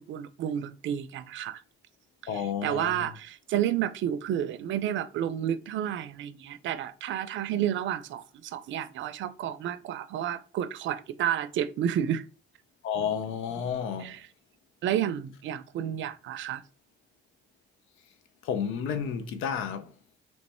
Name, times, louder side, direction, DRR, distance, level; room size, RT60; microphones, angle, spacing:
voice 1, 0.0-1.6 2.6-12.2 14.0-14.2 14.8-16.6, right 10 dB, 70° right, 0.5 m, -31 dB
voice 2, 2.3-3.1 12.8-14.2 18.4-19.9, left 7 dB, 85° left, 0.6 m, -31 dB
3.2 x 3.1 x 4.2 m
cardioid pair, 90°, 20 cm